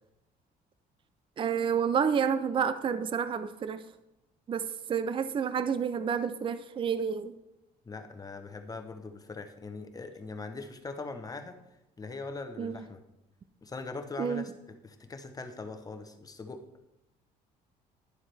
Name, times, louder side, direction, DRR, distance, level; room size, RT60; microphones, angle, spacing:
voice 1, 1.4-3.8 4.5-7.3 12.6-12.8 14.2-14.4, right 7 dB, 30° right, 12 dB, 0.5 m, -29 dB
voice 2, 7.8-11.6 12.0-13.0 13.6-16.6, left 3 dB, 20° left, 7 dB, 0.9 m, -41 dB
11.0 x 7.2 x 3.4 m, 0.93 s
cardioid pair, 110°, 17 cm